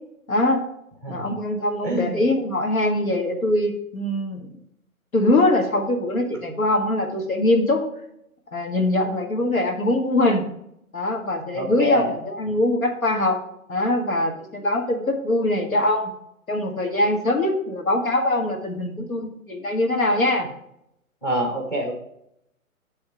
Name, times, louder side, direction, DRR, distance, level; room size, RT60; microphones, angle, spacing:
voice 1, 0.3-0.6 1.1-4.5 5.1-7.8 8.5-10.5 10.9-13.4 13.7-16.1 16.5-20.5, left 1 dB, 70° left, 2 dB, 1.9 m, -22 dB
voice 2, 1.8-2.3 11.5-12.1 12.5-12.6 21.2-21.9, right 1 dB, 5° left, 0 dB, 0.7 m, -26 dB
9.8 x 3.6 x 5.8 m, 0.77 s
figure-of-eight pair, 140°, 43 cm